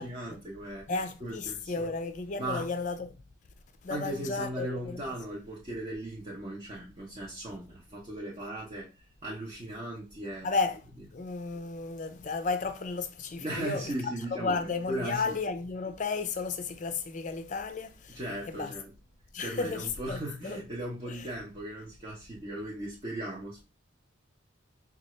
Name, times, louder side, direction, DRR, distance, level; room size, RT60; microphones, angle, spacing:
voice 1, 0.0-1.9 2.4-2.7 3.9-10.6 13.4-15.4 18.1-18.9 19.4-23.6, right 1 dB, 30° right, 0.8 m, -38 dB
voice 2, 0.9-3.1 3.8-5.0 10.4-10.8 11.1-13.9 14.3-18.2 18.5-18.7 19.3-20.6 21.1-21.2, left 4 dB, 40° left, 0.4 m, -33 dB
5.2 x 2.4 x 3.0 m
head